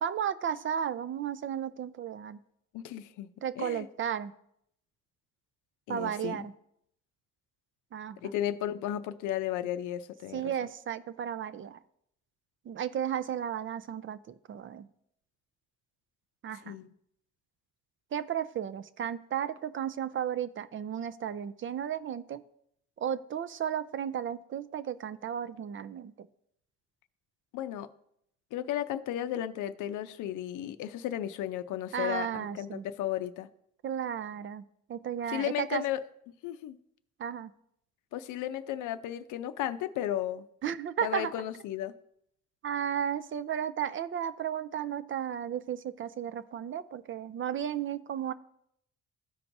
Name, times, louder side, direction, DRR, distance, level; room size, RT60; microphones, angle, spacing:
voice 1, 0.0-2.4 3.4-4.3 5.9-6.5 7.9-8.2 10.3-11.8 12.7-14.9 16.4-16.7 18.1-22.4 23.0-26.3 31.9-32.8 33.8-34.6 34.9-35.8 37.2-37.5 40.6-41.3 42.6-48.3, right 9 dB, 45° right, 15 dB, 0.4 m, -34 dB
voice 2, 2.7-3.3 3.6-3.9 5.9-6.5 8.2-10.5 16.6-16.9 27.5-27.9 28.5-33.5 35.3-36.0 36.4-36.8 38.1-40.4 41.0-41.9, left 12 dB, 85° left, 12 dB, 0.5 m, -34 dB
13.5 x 4.5 x 2.6 m, 0.73 s
cardioid pair, 90°, 30 cm